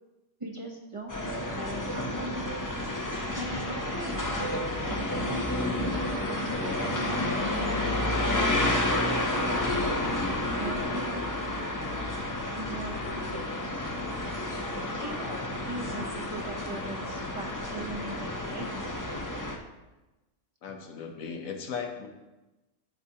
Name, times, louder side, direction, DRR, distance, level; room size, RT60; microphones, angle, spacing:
voice 1, 0.4-2.5 3.4-4.5 4.9-7.8 10.5-11.3 12.5-13.7 14.9-18.8, right 2 dB, 30° right, -1 dB, 0.8 m, -40 dB
sound 1, 0.9-1.0 1.9-17.3, right 1 dB, 90° right, 2.2 m, -47 dB
sound 2, 1.1-19.6, left 1 dB, 25° left, 0.4 m, -30 dB
voice 2, 20.6-22.1, left 6 dB, 90° left, 3 dB, 1.3 m, -37 dB
13.0 x 4.9 x 2.8 m, 1.1 s
omnidirectional pair, 1.4 m